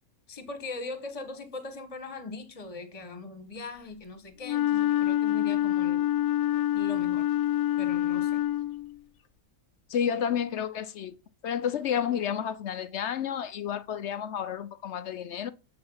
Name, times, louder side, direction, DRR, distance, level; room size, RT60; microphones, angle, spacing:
voice 1, 0.3-6.1 6.7-7.3 7.8-8.4, left 3 dB, 25° left, 1.4 m, -40 dB
Wind instrument woodwind instrument, 4.4-8.9, left 13 dB, 85° left, 1.3 m, -26 dB
voice 2, 9.9-11.2 11.4-15.5, left 8 dB, 65° left, 0.8 m, -30 dB
7.9 x 6.8 x 5.5 m
omnidirectional pair, 1.5 m